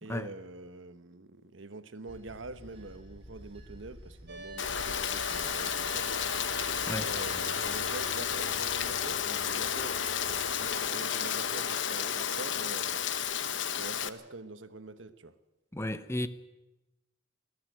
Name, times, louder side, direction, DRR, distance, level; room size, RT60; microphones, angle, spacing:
voice 1, 0.0-6.2 7.0-13.0 13.8-15.3, right 2 dB, 90° right, 1.2 m, -45 dB
Bell / Train, 2.1-10.6, equal, 30° right, 5.1 m, -52 dB
sound 1, 4.3-14.3, right 2 dB, 60° right, 2.2 m, -45 dB
Rain, 4.6-14.1, left 8 dB, 75° left, 0.9 m, -32 dB
voice 2, 15.7-16.3, left 1 dB, 15° left, 0.9 m, -33 dB
19.5 x 14.5 x 9.2 m
head